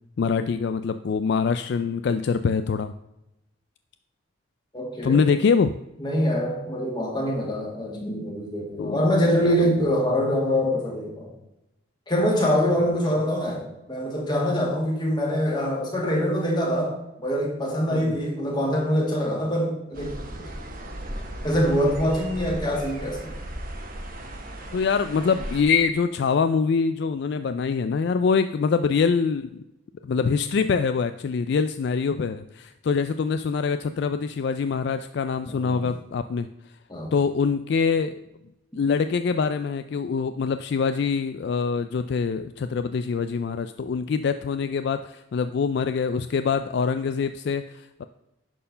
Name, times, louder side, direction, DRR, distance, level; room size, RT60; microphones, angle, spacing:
voice 1, 0.2-2.9 5.0-5.7 8.8-9.0 9.4-10.0 17.9-18.2 24.7-29.6 30.0-36.5 37.1-38.2 38.8-48.1, left 5 dB, 55° left, 10 dB, 0.3 m, -24 dB
voice 2, 4.7-5.2 6.0-11.3 12.1-16.9 17.2-20.1 20.4-20.5 21.4-23.3 35.5-35.9 36.9-37.1, equal, 20° left, -2 dB, 2.0 m, -24 dB
sound 1, 19.9-25.6, right 1 dB, 45° right, 1.2 m, -36 dB
11.0 x 4.5 x 5.5 m, 0.93 s
head